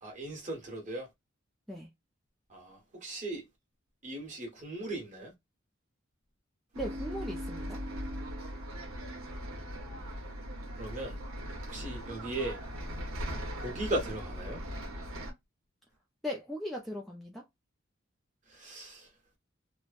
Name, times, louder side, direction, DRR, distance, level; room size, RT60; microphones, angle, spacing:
voice 1, 0.0-1.1 2.5-3.4 4.0-5.3 10.8-11.1 11.7-12.6 13.6-14.6 18.5-19.1, right 1 dB, 35° right, 1.3 m, -37 dB
Bus, 6.7-15.3, equal, 85° right, 0.9 m, -39 dB
voice 2, 6.8-7.8 16.2-17.4, equal, ahead, 0.4 m, -38 dB
3.0 x 2.1 x 2.4 m
head